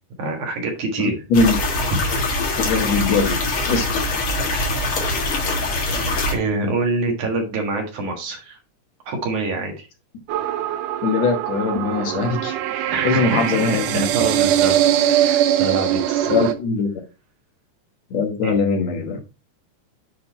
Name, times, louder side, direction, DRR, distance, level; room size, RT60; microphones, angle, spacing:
voice 1, 0.2-1.2 1.9-2.3 4.5-4.6 6.3-8.6 9.1-9.9 12.9-13.4 13.9-14.8 15.1-16.3 18.4-18.8, right 3 dB, 70° right, 2 dB, 3.1 m, -25 dB
voice 2, 1.0-1.6 2.7-3.3 3.7-4.2 11.0-14.0 16.3-16.9 18.1-19.2, left 4 dB, 65° left, 3 dB, 2.3 m, -21 dB
sound 1, 1.3-6.3, left 2 dB, 50° left, 2.2 m, -23 dB
sound 2, 10.3-16.5, right 11 dB, 90° right, 2.3 m, -21 dB
8.8 x 4.0 x 4.2 m, 0.30 s
omnidirectional pair, 3.6 m